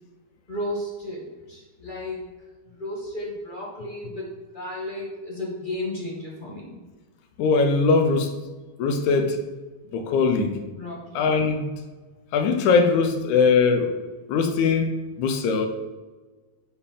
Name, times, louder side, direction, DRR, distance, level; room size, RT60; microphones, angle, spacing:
voice 1, 0.5-2.2 2.6-6.8 10.8-11.2, left 1 dB, 25° left, -4 dB, 1.0 m, -33 dB
voice 2, 7.4-8.3 8.8-9.4 9.9-10.5 11.1-11.7 12.3-14.0 14.3-15.7, left 4 dB, 80° left, 5 dB, 2.2 m, -21 dB
7.1 x 4.4 x 5.6 m, 1.3 s
omnidirectional pair, 3.4 m